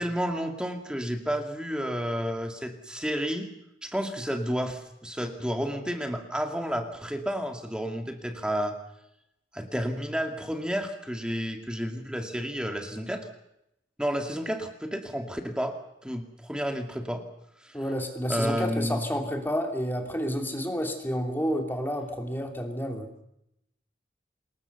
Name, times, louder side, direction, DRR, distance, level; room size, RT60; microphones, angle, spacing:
voice 1, 0.0-3.5 3.8-8.8 9.5-13.3 14.0-15.7 16.0-17.2 17.6-17.8 18.3-19.1, equal, 5° right, 4 dB, 2.1 m, -31 dB
voice 2, 17.7-23.1, equal, 10° left, 4 dB, 2.8 m, -30 dB
27.5 x 21.0 x 6.9 m, 0.81 s
head